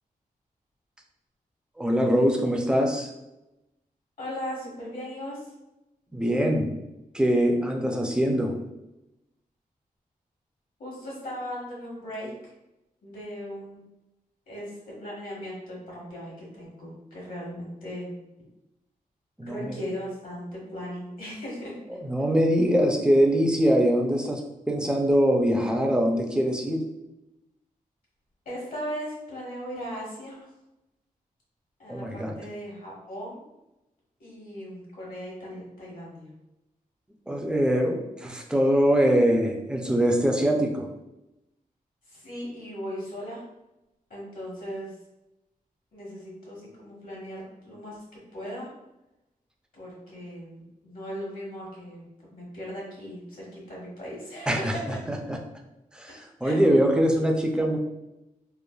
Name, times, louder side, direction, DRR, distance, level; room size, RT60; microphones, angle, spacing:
voice 1, 1.8-3.1 6.1-6.7 7.1-8.6 19.4-19.8 21.9-24.4 24.7-26.8 31.9-32.3 37.3-40.9 54.5-54.8 55.1-55.4 55.9-57.8, equal, 5° right, 2 dB, 0.3 m, -23 dB
voice 2, 4.2-5.5 10.8-12.5 13.0-13.8 14.5-18.1 19.4-21.7 28.4-30.4 31.8-33.4 34.2-36.3 42.1-43.4 44.1-45.0 45.9-48.7 49.7-54.8 56.4-56.6, equal, 70° left, -4 dB, 1.2 m, -38 dB
3.1 x 2.2 x 2.2 m, 0.93 s
wide cardioid pair, 125°, 15 cm